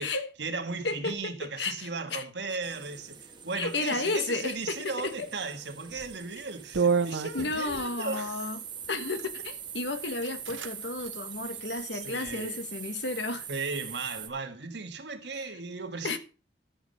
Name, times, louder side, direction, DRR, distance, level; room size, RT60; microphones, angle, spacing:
voice 1, 0.0-8.5 8.9-9.2 12.0-12.6 13.5-16.2, right 4 dB, 65° right, 1.5 m, -36 dB
voice 2, 0.8-2.3 3.6-5.3 7.3-8.6 8.9-13.5 15.3-15.6 16.0-16.2, left 3 dB, 70° left, 1.2 m, -33 dB
sound 1, 2.6-14.3, right 8 dB, 25° right, 1.1 m, -43 dB
sound 2, 5.9-6.2 6.7-7.9 8.8-9.3 9.9-10.0 10.2-10.7 11.0-11.1 11.6-12.3, right 5 dB, 80° right, 0.8 m, -30 dB
12.0 x 7.1 x 5.2 m
head